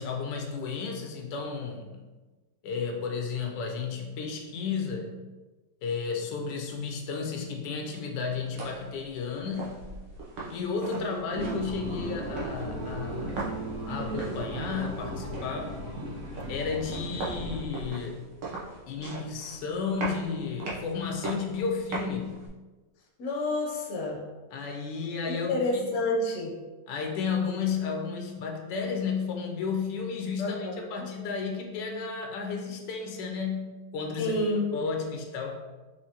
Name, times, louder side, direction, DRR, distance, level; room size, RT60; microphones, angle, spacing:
voice 1, 0.0-2.0 2.6-5.1 5.8-9.8 10.5-13.5 13.9-15.8 16.5-18.3 18.9-22.5 24.5-25.9 26.9-34.4 34.7-35.6, left 5 dB, 80° left, 2 dB, 1.3 m, -33 dB
sound 1, 8.3-22.5, right 3 dB, 80° right, 1.5 m, -40 dB
sound 2, 11.3-17.6, right 1 dB, 50° right, 0.8 m, -36 dB
voice 2, 23.2-24.2 25.3-26.5 30.4-31.0 34.2-34.7, left 2 dB, 55° left, 0 dB, 0.9 m, -29 dB
5.0 x 2.9 x 2.8 m, 1.2 s
omnidirectional pair, 1.9 m